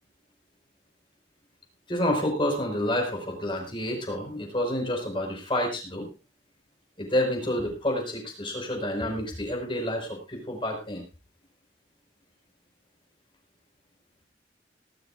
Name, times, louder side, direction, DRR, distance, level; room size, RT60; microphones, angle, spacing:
voice 1, 1.9-6.1 7.0-11.0, left 1 dB, 25° left, 2 dB, 5.2 m, -29 dB
19.5 x 13.0 x 2.6 m, 0.31 s
head